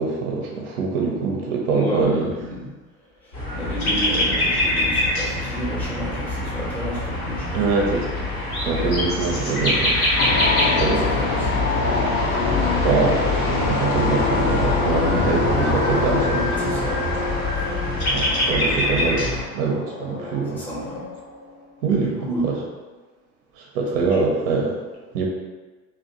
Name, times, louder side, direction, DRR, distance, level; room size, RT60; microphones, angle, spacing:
voice 1, 0.0-2.3 7.5-8.1 8.7-10.0 10.8-11.2 12.8-16.7 18.1-19.3 19.5-20.6 21.8-22.1 22.4-22.5 23.6-24.8 25.1-25.2, right 4 dB, 50° right, 0 dB, 0.5 m, -23 dB
voice 2, 1.7-2.7 3.2-7.6 10.6-13.0 16.6-17.0 17.5-17.6 18.4-18.5 20.5-21.0 21.9-22.6 23.9-24.2, equal, 5° left, -6 dB, 0.7 m, -32 dB
sound 1, 3.3-19.4, left 1 dB, 85° left, 0.9 m, -24 dB
sound 2, 10.2-21.6, left 4 dB, 65° left, 0.6 m, -26 dB
2.6 x 2.0 x 2.7 m, 1.3 s
figure-of-eight pair, 65°, 43 cm